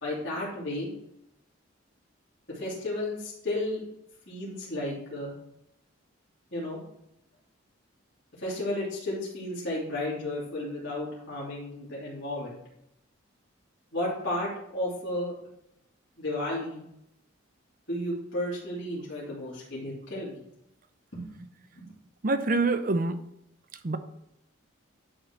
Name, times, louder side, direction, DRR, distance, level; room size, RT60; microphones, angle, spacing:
voice 1, 0.0-0.9 2.5-3.8 4.3-5.3 6.5-6.8 8.4-12.6 13.9-15.3 16.2-16.8 17.9-20.4 21.1-21.3 21.7-21.8, left 1 dB, 65° left, -8 dB, 2.9 m, -33 dB
voice 2, 22.2-23.2 23.8-24.0, right 3 dB, 40° right, 10 dB, 0.6 m, -25 dB
11.0 x 3.8 x 4.4 m, 0.81 s
head